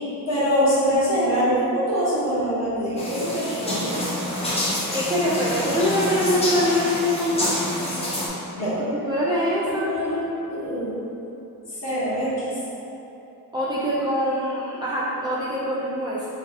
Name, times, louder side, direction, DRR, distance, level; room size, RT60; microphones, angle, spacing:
voice 1, 0.3-4.0 8.5-8.8 9.6-10.2 10.5-10.9 11.7-12.6, equal, 40° left, -10 dB, 1.4 m, -24 dB
sound 1, 3.0-8.3, left 1 dB, 15° left, 0.7 m, -27 dB
voice 2, 4.9-7.7 8.7-10.5 13.5-16.3, left 1 dB, 10° right, -8 dB, 0.3 m, -24 dB
3.0 x 2.9 x 3.5 m, 3.0 s
cardioid pair, 115°, 38 cm